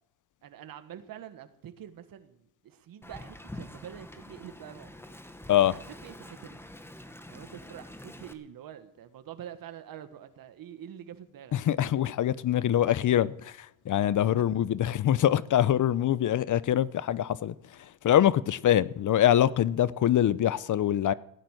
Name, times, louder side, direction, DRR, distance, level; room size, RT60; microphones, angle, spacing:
voice 1, 0.4-4.9 5.7-6.6 7.3-11.6, right 10 dB, 70° right, 1.6 m, -46 dB
Wind, 3.0-8.3, left 1 dB, 5° left, 1.5 m, -46 dB
voice 2, 11.5-21.1, left 11 dB, 60° left, 0.8 m, -24 dB
17.0 x 10.5 x 6.5 m
cardioid pair, 90°, 35 cm